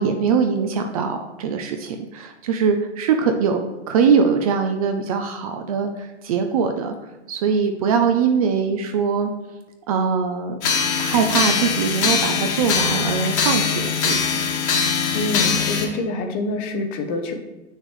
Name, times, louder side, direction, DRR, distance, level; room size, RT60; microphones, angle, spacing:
voice 1, 0.0-6.9 7.3-9.3 9.9-10.5 11.0-14.4, right 6 dB, 30° right, 6 dB, 0.5 m, -22 dB
sound 1, 10.6-15.9, left 6 dB, 65° left, 1.8 m, -22 dB
voice 2, 15.1-17.3, left 2 dB, 25° left, 6 dB, 0.7 m, -26 dB
7.9 x 6.4 x 3.2 m, 1.0 s
hypercardioid pair, 145°, 37 cm